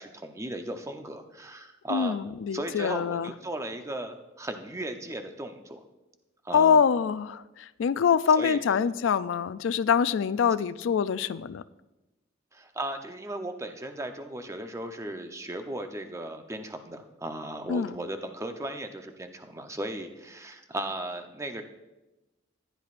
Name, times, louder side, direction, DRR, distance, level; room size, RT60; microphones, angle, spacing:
voice 1, 0.0-2.2 2.5-5.8 6.4-6.8 8.4-8.8 12.5-21.6, right 1 dB, 15° right, 6 dB, 0.7 m, -36 dB
voice 2, 1.9-3.3 6.5-11.6 17.7-17.9, left 7 dB, 75° left, 16 dB, 0.4 m, -25 dB
15.0 x 10.5 x 2.5 m, 1.1 s
head